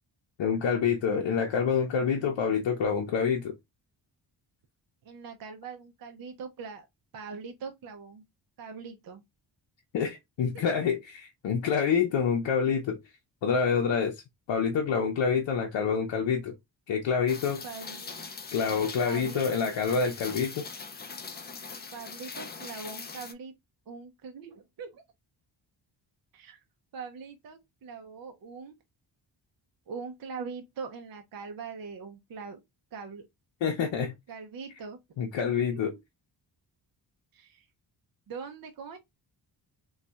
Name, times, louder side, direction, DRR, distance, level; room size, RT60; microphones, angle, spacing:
voice 1, 0.4-3.5 9.9-13.0 13.4-14.1 14.5-16.5 16.9-17.6 18.5-20.6 33.6-34.1 35.2-35.9, left 6 dB, 80° left, 0.7 m, -27 dB
voice 2, 5.0-6.9 7.1-8.2 8.6-9.2 10.5-10.6 17.6-18.2 19.0-19.5 21.9-23.5 23.9-25.0 26.3-26.6 26.9-28.7 29.9-32.6 32.9-33.3 34.3-35.0 35.6-36.0 37.3-37.7 38.3-39.0, right 5 dB, 55° right, 0.5 m, -42 dB
Rain, 17.3-23.3, left 4 dB, 25° left, 0.3 m, -42 dB
3.9 x 2.3 x 2.2 m
wide cardioid pair, 105°, 44 cm